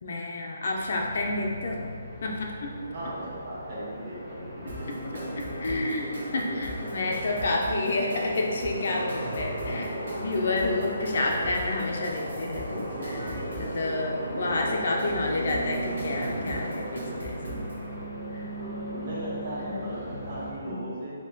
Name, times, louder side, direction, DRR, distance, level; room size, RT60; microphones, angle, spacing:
voice 1, 0.0-1.9 2.2-2.7 4.9-5.0 5.6-17.7 18.3-18.5 19.6-19.9 20.6-20.8, left 2 dB, 45° left, 0 dB, 0.4 m, -30 dB
Aircraft, 0.6-20.5, equal, ahead, 0.9 m, -37 dB
voice 2, 2.9-4.9 5.7-5.8 18.2-21.1, right 1 dB, 40° right, -8 dB, 1.4 m, -37 dB
sound 1, 4.7-17.8, right 1 dB, 80° right, 1.4 m, -39 dB
4.3 x 2.8 x 3.9 m, 2.2 s
hypercardioid pair, 175°, 0 cm